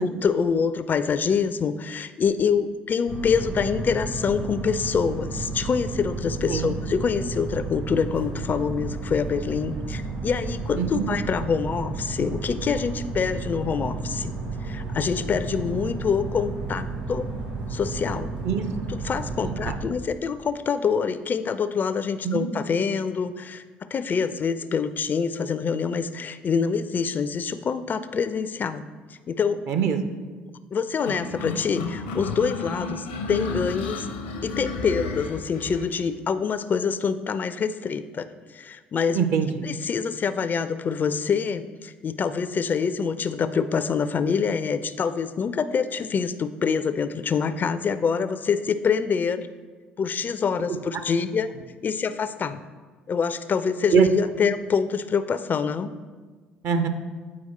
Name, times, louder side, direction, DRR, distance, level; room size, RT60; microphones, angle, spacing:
voice 1, 0.0-14.3 14.6-17.3 17.7-18.3 19.0-23.6 23.9-28.8 29.3-29.6 30.7-34.1 34.4-38.3 38.5-39.2 39.6-49.5 50.0-51.5 51.8-52.6 53.1-55.9, left 6 dB, 35° left, 12 dB, 0.4 m, -26 dB
sound 1, 3.1-19.8, right 3 dB, 80° right, 1.7 m, -32 dB
voice 2, 10.7-11.1 18.4-18.7 19.4-19.8 22.2-22.5 29.7-30.0 39.1-39.7 53.9-54.1 56.6-56.9, right 7 dB, 55° right, 8 dB, 0.6 m, -23 dB
sound 2, 31.1-35.9, left 3 dB, 75° left, 0.6 m, -32 dB
8.5 x 4.6 x 4.1 m, 1.4 s
figure-of-eight pair, 55°, 5 cm